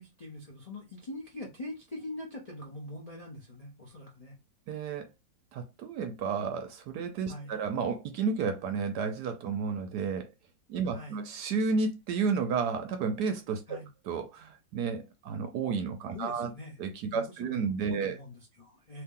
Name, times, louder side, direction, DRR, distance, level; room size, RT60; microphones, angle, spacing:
voice 1, 0.0-4.4 7.3-7.6 10.8-11.2 13.7-13.9 16.1-16.8 17.1-19.0, left 1 dB, 45° left, 0.4 m, -43 dB
voice 2, 4.7-5.1 5.5-10.3 10.7-13.8 14.1-16.5 16.8-18.2, right 5 dB, 70° right, 1.0 m, -32 dB
2.9 x 2.9 x 3.6 m
omnidirectional pair, 2.0 m